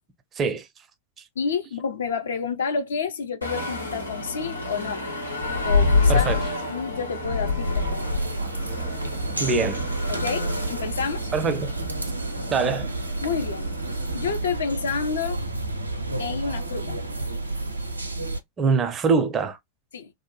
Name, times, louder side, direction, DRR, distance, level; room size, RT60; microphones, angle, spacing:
voice 1, 0.4-0.7 6.1-6.4 9.4-9.8 11.3-11.7 12.5-12.9 18.6-19.6, right 4 dB, 25° right, 0.5 m, -23 dB
voice 2, 1.4-5.0 5.6-6.4 6.7-8.1 10.1-11.3 13.2-13.8 14.1-15.4 16.2-17.0 19.9-20.1, left 6 dB, 65° left, 0.5 m, -29 dB
sound 1, 3.4-14.4, left 3 dB, 85° left, 0.9 m, -28 dB
sound 2, 7.6-18.4, right 2 dB, 85° right, 0.5 m, -30 dB
2.7 x 2.1 x 2.9 m
figure-of-eight pair, 90°, 0 cm